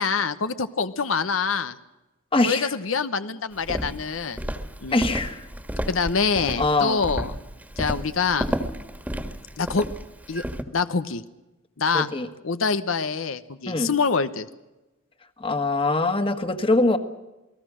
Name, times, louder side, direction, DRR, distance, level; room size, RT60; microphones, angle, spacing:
voice 1, 0.0-1.8 2.4-4.4 4.8-5.1 5.9-7.4 7.8-8.5 9.6-9.9 10.3-10.4 10.7-11.2 11.8-12.1 12.4-14.5, left 5 dB, 90° left, 11 dB, 1.0 m, -25 dB
voice 2, 2.3-2.7 4.9-5.4 6.6-7.0 11.9-12.3 13.7-13.9 15.4-17.0, left 2 dB, 25° left, 7 dB, 1.6 m, -23 dB
Walk footsteps, 3.6-10.6, equal, 10° right, 1.7 m, -32 dB
28.5 x 19.5 x 6.3 m, 1.0 s
head